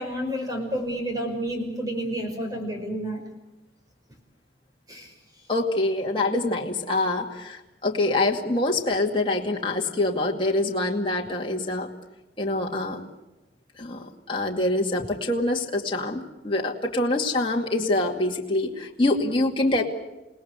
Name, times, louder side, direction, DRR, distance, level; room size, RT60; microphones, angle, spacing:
voice 1, 0.0-3.2 4.9-5.1, equal, 20° right, 4 dB, 5.6 m, -30 dB
voice 2, 5.5-11.9 12.4-13.0 13.8-19.8, left 2 dB, 30° left, 0 dB, 2.4 m, -25 dB
29.0 x 19.0 x 8.2 m, 1.0 s
head